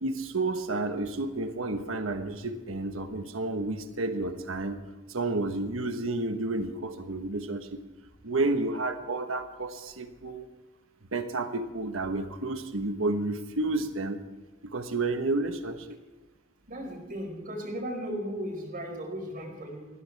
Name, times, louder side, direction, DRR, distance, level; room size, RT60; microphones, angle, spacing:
voice 1, 0.0-4.8 5.1-7.8 8.2-10.5 11.1-14.2 14.6-16.0, right 2 dB, 90° right, 7 dB, 1.3 m, -31 dB
voice 2, 16.7-19.9, equal, 45° right, 1 dB, 4.8 m, -36 dB
20.5 x 15.5 x 3.5 m, 1.2 s
head